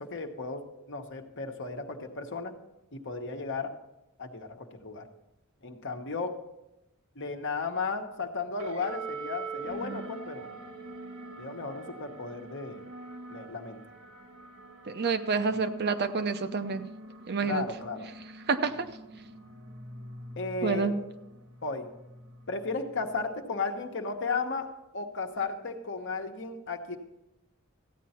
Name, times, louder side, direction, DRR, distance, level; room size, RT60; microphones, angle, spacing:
voice 1, 0.0-2.5 2.9-3.7 4.2-5.1 5.6-6.4 7.1-10.5 11.4-12.8 13.3-13.8 17.4-18.1 20.4-20.9 21.6-21.9 22.5-24.7 24.9-27.0, left 4 dB, 60° left, 4 dB, 1.2 m, -34 dB
sound 1, 8.6-23.3, right 3 dB, 90° right, 1.6 m, -44 dB
voice 2, 14.9-16.9 17.3-17.6 18.5-18.9 20.6-21.0, right 4 dB, 50° right, 9 dB, 0.7 m, -28 dB
14.0 x 9.3 x 4.3 m, 0.92 s
head